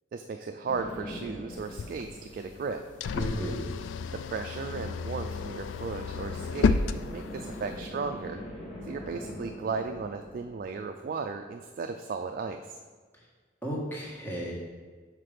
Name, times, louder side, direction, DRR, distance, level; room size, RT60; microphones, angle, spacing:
voice 1, 0.1-2.8 4.1-8.4 8.8-12.8, right 4 dB, 50° right, 5 dB, 0.3 m, -35 dB
sound 1, 0.6-3.4 6.2-11.6, left 1 dB, 35° left, 1.5 m, -43 dB
sound 2, 1.5-7.8, left 5 dB, 90° left, 0.3 m, -32 dB
voice 2, 3.2-3.6 13.6-14.5, equal, 10° left, -4 dB, 1.5 m, -33 dB
5.9 x 4.8 x 5.0 m, 1.5 s
head